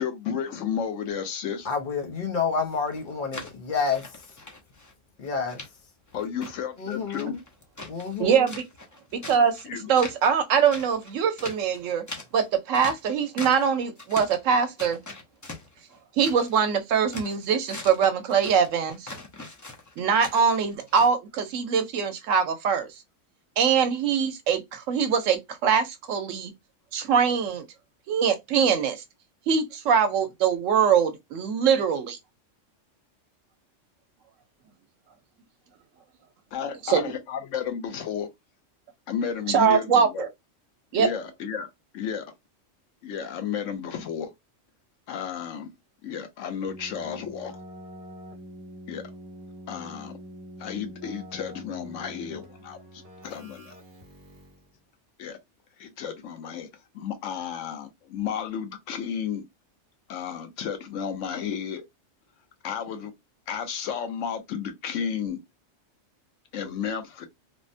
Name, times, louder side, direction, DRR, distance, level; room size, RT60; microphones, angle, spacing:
voice 1, 0.0-1.7 6.1-7.4 9.6-9.9 36.5-38.3 39.1-40.3 40.9-41.7 41.9-42.3 43.0-44.3 45.1-45.7 46.0-47.5 48.9-49.0 49.7-50.1 50.6-52.8 53.2-53.8 55.2-55.4 55.8-56.7 56.9-59.4 60.1-61.8 62.6-63.1 63.5-65.4 66.5-67.3, left 8 dB, 75° left, 1.0 m, -32 dB
voice 2, 1.6-4.0 5.2-5.6 6.8-7.4 7.9-8.5, left 5 dB, 50° left, 0.7 m, -29 dB
sound 1, 2.7-4.9 5.2-5.7 6.1-8.2 8.5-9.6 10.0-10.4 10.7-13.7 14.0-14.5 14.8-16.6 16.9-21.1, left 2 dB, 30° left, 0.3 m, -41 dB
voice 3, 8.2-8.7 9.1-9.5 9.9-12.0 12.3-15.0 16.2-19.1 20.0-22.9 23.6-26.5 26.9-27.6 28.1-29.0 29.5-32.2 36.8-37.1 39.5-40.3 40.9-41.1, right 7 dB, 85° right, 1.0 m, -23 dB
Keyboard (musical), 46.6-54.7, equal, 45° right, 1.1 m, -45 dB
3.3 x 2.1 x 2.5 m
omnidirectional pair, 1.3 m